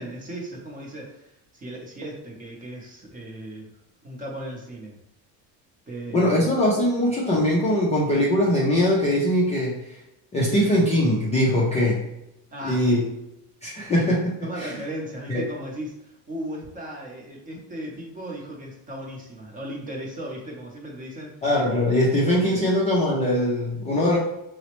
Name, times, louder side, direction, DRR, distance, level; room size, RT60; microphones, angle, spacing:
voice 1, 0.0-3.7 4.0-5.0 5.9-6.5 12.5-13.1 14.4-21.3 22.5-22.6, right 1 dB, 20° right, -1 dB, 0.6 m, -36 dB
voice 2, 6.1-10.0 10.3-12.0 12.6-13.1 13.6-14.7 15.3-15.4 21.4-24.2, left 1 dB, 20° left, -5 dB, 0.3 m, -21 dB
4.0 x 2.0 x 2.9 m, 0.87 s
cardioid pair, 150°, 40 cm